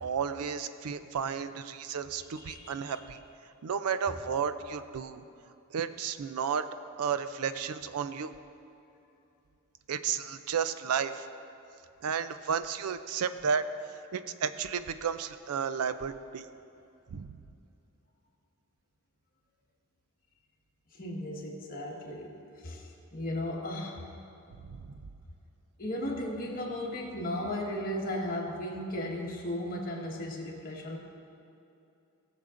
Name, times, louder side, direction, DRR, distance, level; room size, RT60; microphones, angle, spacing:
voice 1, 0.0-3.2 3.6-5.2 5.7-6.7 7.0-8.3 9.9-11.3 12.0-13.6 14.1-16.4 17.1-17.4 24.7-25.0, right 7 dB, 75° right, 11 dB, 0.4 m, -32 dB
voice 2, 2.4-3.0 20.9-24.0 25.8-31.0, left 1 dB, 40° left, -2 dB, 1.5 m, -36 dB
19.0 x 7.1 x 2.5 m, 2.8 s
head